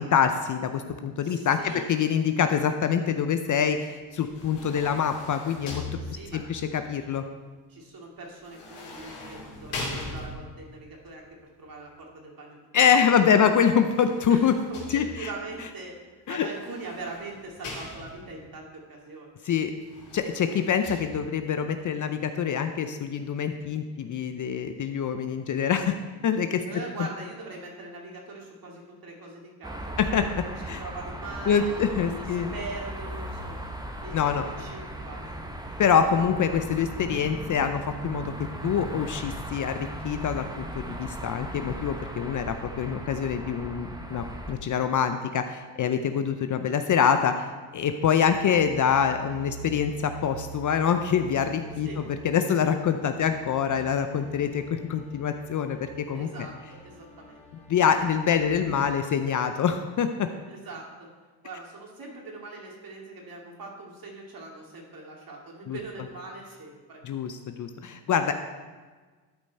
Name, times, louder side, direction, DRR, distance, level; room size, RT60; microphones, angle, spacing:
voice 1, 0.0-5.8 6.3-7.2 12.7-14.5 14.9-15.3 16.3-16.5 19.4-19.7 20.1-26.6 30.0-30.3 30.6-30.8 31.5-32.5 34.1-34.5 35.8-38.3 38.6-51.9 52.2-56.3 57.7-60.3 65.7-65.8 67.0-68.3, left 7 dB, 40° left, 8 dB, 0.6 m, -25 dB
voice 2, 1.2-1.9 6.0-6.4 7.7-11.2 11.6-13.0 13.3-13.6 14.3-19.4 26.6-31.8 32.2-35.3 51.8-52.1 56.1-57.5 60.5-61.1 61.4-67.0, right 3 dB, 45° right, -1 dB, 2.7 m, -42 dB
sound 1, 4.1-6.6 8.4-10.7 13.6-15.4 16.4-18.4 19.8-21.0, left 2 dB, 85° left, 3.0 m, -40 dB
sound 2, 29.6-44.5, right 1 dB, 10° right, 1.2 m, -37 dB
sound 3, 48.2-58.8, right 4 dB, 10° left, 2.8 m, -45 dB
12.5 x 5.3 x 4.2 m, 1.4 s
supercardioid pair, 80°, 49 cm